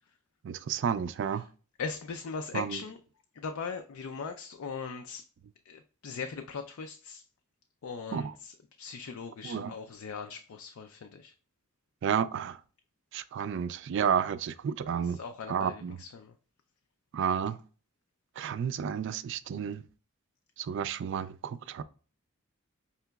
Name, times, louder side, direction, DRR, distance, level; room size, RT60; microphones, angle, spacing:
voice 1, 0.4-1.4 2.5-2.8 8.1-8.3 9.4-9.7 12.0-12.6 13.1-15.2 15.5-16.0 17.1-17.6 18.4-19.8 20.6-21.8, right 7 dB, 60° right, 0.3 m, -31 dB
voice 2, 1.8-3.0 3.3-5.3 5.7-7.2 7.8-11.3 15.0-16.3, left 5 dB, 80° left, 0.4 m, -40 dB
5.5 x 2.9 x 2.3 m
head